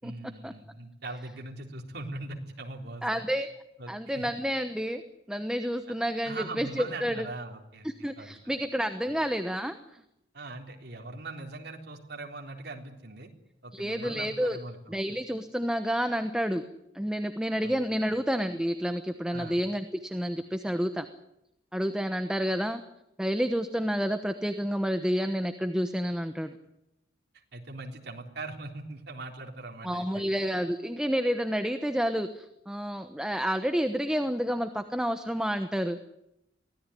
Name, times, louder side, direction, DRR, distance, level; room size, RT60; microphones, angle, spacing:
voice 1, 0.0-3.2 3.8-4.3 6.2-7.9 8.2-8.4 10.3-13.3 13.6-14.9 17.6-17.7 18.1-18.2 19.3-19.6 27.5-30.2, right 2 dB, 65° right, 1 dB, 3.8 m, -41 dB
voice 2, 3.0-3.5 3.9-5.0 5.3-7.3 7.8-10.0 13.7-14.6 14.9-16.6 16.9-21.1 21.7-22.8 23.2-26.6 29.8-36.0, equal, 5° right, 7 dB, 1.0 m, -29 dB
24.0 x 17.0 x 10.0 m, 0.86 s
head